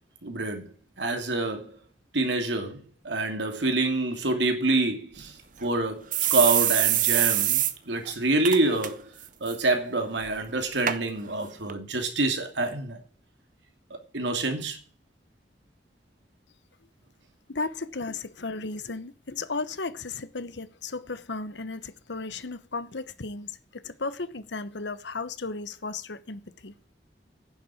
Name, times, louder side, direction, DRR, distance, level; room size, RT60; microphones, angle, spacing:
voice 1, 0.2-1.8 2.1-5.3 5.6-9.1 9.4-13.0 13.9-14.8, right 2 dB, 85° right, 2.7 m, -27 dB
sound 1, 5.2-5.3 5.6-5.7 6.1-7.7 8.1-8.2 8.4-8.9 9.2-9.5 10.2-10.3 10.9-11.0 11.7-11.8, right 12 dB, 50° right, 0.9 m, -24 dB
voice 2, 17.5-26.7, left 3 dB, 80° left, 1.0 m, -35 dB
10.0 x 7.5 x 8.5 m
head